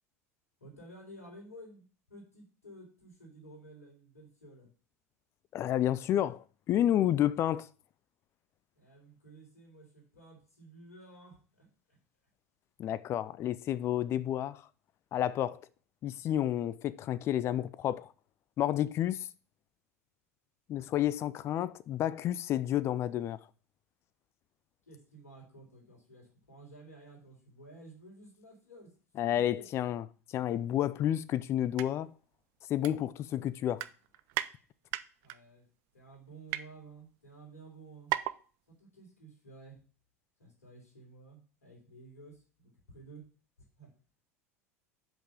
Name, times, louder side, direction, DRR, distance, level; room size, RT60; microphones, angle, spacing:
voice 1, 0.6-4.7 8.8-12.0 24.8-28.9 29.2-29.7 35.2-35.7 35.9-38.1 38.6-39.8 40.4-43.3 43.6-43.9, right 2 dB, 75° left, 3.5 m, -53 dB
voice 2, 5.5-7.7 12.8-14.7 15.1-15.7 16.0-18.1 18.6-19.3 20.7-23.5 29.2-30.0 30.3-32.1 32.7-33.8, left 11 dB, 35° left, 0.4 m, -30 dB
sound 1, 31.6-31.9 32.2-32.3 32.8-33.4 33.7-34.5 34.9-35.4 36.0-36.6 37.4-37.5 37.7-37.8 38.1-38.4 38.7-38.8, right 15 dB, 50° right, 0.5 m, -35 dB
5.9 x 5.5 x 6.7 m
figure-of-eight pair, 75°, 8 cm